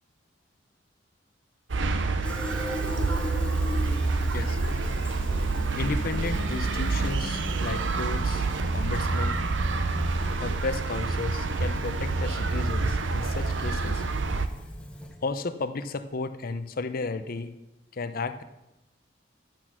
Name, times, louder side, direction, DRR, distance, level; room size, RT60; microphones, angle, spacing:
sound 1, 1.7-14.5, right 3 dB, 70° right, 0.7 m, -27 dB
Fill (with liquid), 2.2-15.3, left 1 dB, 5° left, 0.9 m, -40 dB
voice 1, 5.7-9.4 10.4-14.0 15.2-17.5 17.9-18.4, left 3 dB, 50° left, 11 dB, 0.6 m, -33 dB
10.5 x 6.1 x 6.2 m, 0.98 s
head